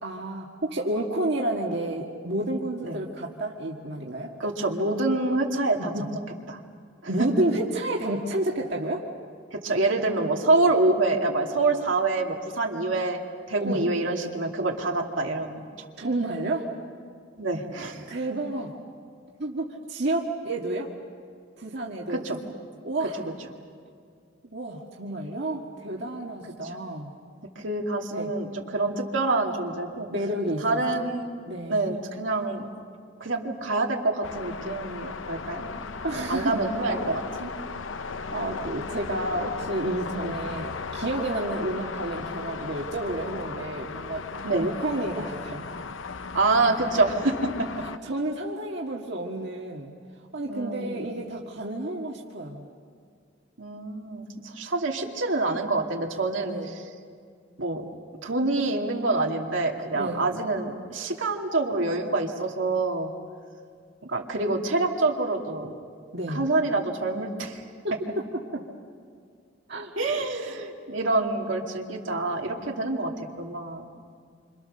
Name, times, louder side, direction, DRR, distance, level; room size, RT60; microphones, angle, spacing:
voice 1, 0.0-4.3 5.9-6.1 7.1-9.1 13.6-13.8 16.0-16.7 18.1-18.7 19.4-20.9 21.6-22.2 22.8-23.2 24.4-27.1 28.1-28.3 30.1-30.8 31.4-31.9 36.0-36.6 38.3-44.3 44.5-45.7 47.8-49.9 50.3-52.6 56.4-56.8 59.9-60.2 66.1-66.5 67.8-68.6 69.7-70.0, right 1 dB, 60° right, -2 dB, 2.0 m, -30 dB
voice 2, 4.4-6.2 6.5-6.6 9.5-13.2 13.5-15.6 17.4-18.0 22.1-22.4 26.6-26.8 27.6-30.1 30.6-31.3 31.7-32.7 33.2-35.7 36.3-37.5 40.1-40.3 44.4-44.6 46.3-47.5 50.5-51.1 53.6-56.8 57.6-57.8 58.2-63.1 64.0-65.7 66.3-67.6 70.0-73.1 73.4-73.8, right 2 dB, 80° right, 1 dB, 2.6 m, -26 dB
sound 1, 34.2-48.0, left 4 dB, 85° left, 0.8 m, -36 dB
28.0 x 26.5 x 6.7 m, 2.1 s
head